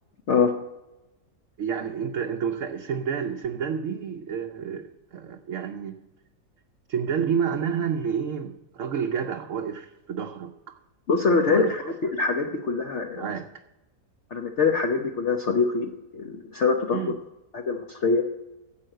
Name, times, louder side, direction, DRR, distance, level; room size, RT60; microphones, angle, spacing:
voice 1, 1.6-6.0 6.9-10.8 11.3-11.9 13.1-13.5 16.9-17.2, right 7 dB, 60° right, 3 dB, 1.0 m, -29 dB
voice 2, 11.1-11.8 12.1-13.3 14.3-17.0 17.5-18.2, left 5 dB, 50° left, 3 dB, 1.0 m, -24 dB
11.0 x 7.6 x 7.8 m, 1.0 s
omnidirectional pair, 1.8 m